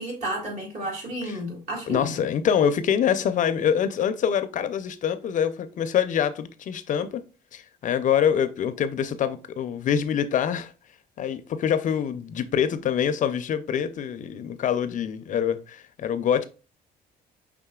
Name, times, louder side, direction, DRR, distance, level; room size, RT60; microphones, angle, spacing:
voice 1, 0.0-2.3, right 1 dB, 50° right, 2.0 m, -32 dB
voice 2, 1.9-7.2 7.5-10.7 11.2-16.5, left 8 dB, 50° left, 0.5 m, -25 dB
5.6 x 3.5 x 2.3 m
cardioid pair, 110°, 17 cm